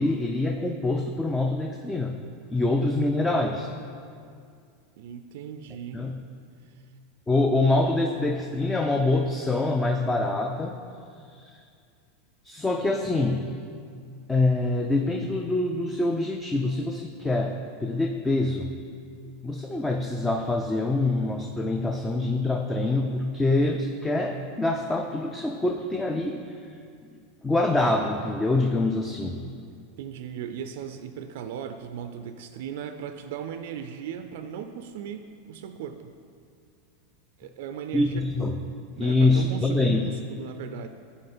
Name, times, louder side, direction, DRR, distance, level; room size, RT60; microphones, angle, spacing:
voice 1, 0.0-2.2 2.5-3.7 5.9-6.2 7.3-10.8 11.3-11.6 12.4-13.5 14.3-18.7 19.4-26.8 27.4-29.4 37.9-38.6 39.0-40.1, left 2 dB, 10° left, 3 dB, 0.3 m, -25 dB
voice 2, 5.0-6.1 6.6-6.8 30.0-36.1 37.4-38.3 39.0-40.9, right 8 dB, 70° right, 8 dB, 0.3 m, -37 dB
9.9 x 3.5 x 4.3 m, 2.3 s
supercardioid pair, 145°, 0 cm